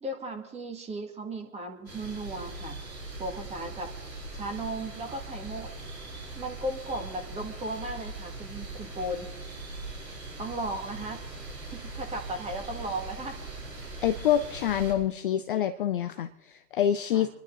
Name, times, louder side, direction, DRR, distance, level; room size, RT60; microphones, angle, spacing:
voice 1, 0.0-2.8 3.2-3.9 4.3-6.1 6.3-9.3 10.4-11.2 11.6-13.4 17.1-17.3, right 1 dB, 15° right, 3 dB, 2.2 m, -36 dB
sound 1, 1.9-14.9, right 2 dB, 85° right, 7.0 m, -41 dB
voice 2, 14.0-17.3, left 10 dB, 35° left, 10 dB, 0.5 m, -26 dB
26.5 x 11.0 x 3.9 m, 1.0 s
figure-of-eight pair, 120°, 49 cm